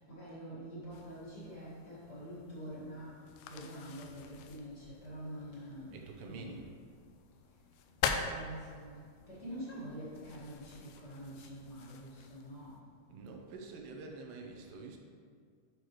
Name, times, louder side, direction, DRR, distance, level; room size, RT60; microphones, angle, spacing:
voice 1, 0.0-3.2 3.5-6.6 8.1-12.8 14.5-14.7, equal, 40° left, -9 dB, 1.5 m, -46 dB
sound 1, 0.9-12.8, left 6 dB, 85° left, 2.5 m, -44 dB
voice 2, 5.9-6.7 13.1-15.0, right 3 dB, 85° right, 2 dB, 2.9 m, -47 dB
8.6 x 6.1 x 3.2 m, 2.1 s
omnidirectional pair, 4.6 m